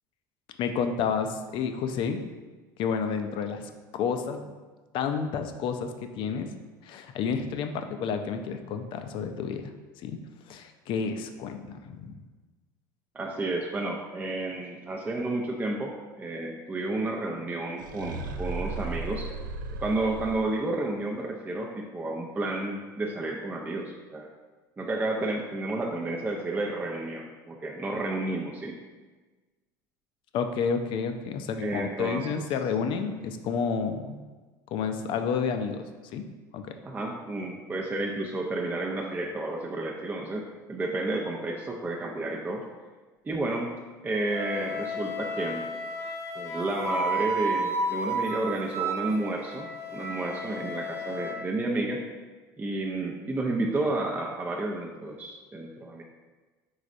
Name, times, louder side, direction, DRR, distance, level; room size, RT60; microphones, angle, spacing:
voice 1, 0.6-2.2 2.8-4.6 4.9-6.5 6.8-9.7 10.0-10.2 10.5-12.2 30.3-34.2 34.7-35.9 36.1-36.2 36.5-36.6, left 6 dB, 55° left, 7 dB, 0.5 m, -30 dB
voice 2, 13.1-19.3 19.8-24.3 24.8-28.7 31.6-32.3 36.8-42.6 43.2-43.7 44.0-45.6 46.3-52.0 52.6-56.0, right 2 dB, 20° right, -1 dB, 0.5 m, -31 dB
Dragon growl, 17.8-20.8, right 3 dB, 85° right, 0.4 m, -36 dB
Wind instrument woodwind instrument, 44.3-51.4, right 1 dB, 25° left, 1.0 m, -32 dB
4.8 x 4.0 x 2.5 m, 1.3 s
hypercardioid pair, 80°, 10 cm